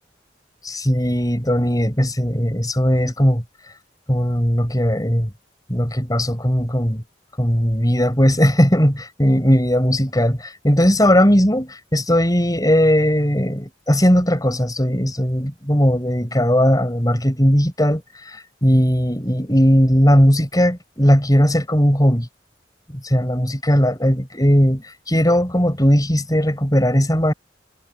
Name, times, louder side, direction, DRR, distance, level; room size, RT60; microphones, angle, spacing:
voice 1, 0.6-3.4 4.1-5.3 5.7-7.0 7.4-22.3 22.9-27.3, equal, 20° left, 7.4 m, -18 dB
head